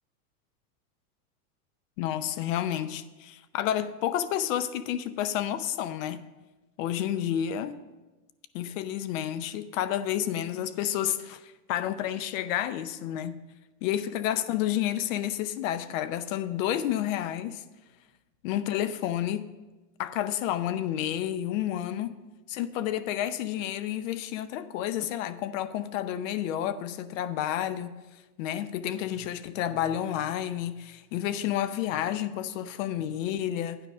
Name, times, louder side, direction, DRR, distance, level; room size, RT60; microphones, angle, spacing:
voice 1, 2.0-6.2 6.8-7.8 8.5-13.4 13.8-17.6 18.4-19.5 20.0-22.2 22.5-28.0 28.4-33.8, left 11 dB, 55° left, 0.7 m, -30 dB
8.9 x 4.9 x 6.9 m
supercardioid pair, 130°, 47 cm